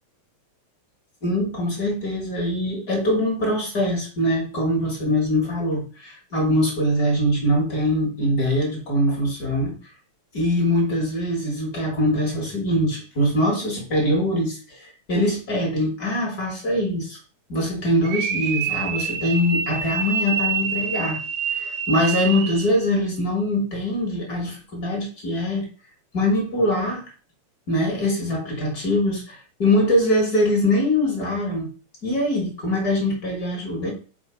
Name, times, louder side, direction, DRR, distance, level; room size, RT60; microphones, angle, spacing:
voice 1, 1.2-9.7 10.3-17.2 17.5-21.2 21.5-25.6 26.1-27.1 27.7-31.7 32.0-33.9, left 1 dB, 40° left, -1 dB, 1.7 m, -23 dB
sound 1, 18.0-22.8, right 7 dB, 85° right, 1.2 m, -27 dB
4.9 x 4.5 x 4.4 m, 0.36 s
omnidirectional pair, 3.3 m